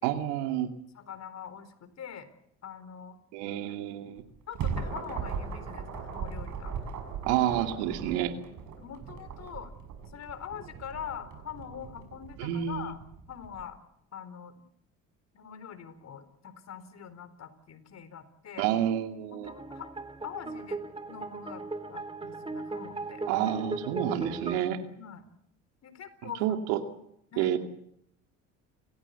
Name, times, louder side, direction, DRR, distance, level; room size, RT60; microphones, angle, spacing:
voice 1, 0.0-0.7 3.3-4.2 7.3-8.3 12.4-12.9 18.6-19.5 23.3-24.8 26.2-26.8 27.4-27.6, right 11 dB, 85° right, 6 dB, 2.6 m, -29 dB
voice 2, 0.9-2.3 2.6-3.2 4.5-6.7 8.8-9.7 10.1-13.0 13.3-13.8 14.1-14.6 15.3-18.7 19.3-19.9 20.2-20.8 21.1-21.6 21.9-23.2 25.0-25.3 25.8-26.6 27.3-27.5, left 8 dB, 50° left, 11 dB, 4.3 m, -43 dB
sound 1, 4.2-13.6, right 6 dB, 60° right, 6.8 m, -38 dB
sound 2, 19.4-24.6, right 3 dB, 15° right, 2.6 m, -37 dB
29.5 x 16.0 x 8.3 m, 0.75 s
supercardioid pair, 75°, 34 cm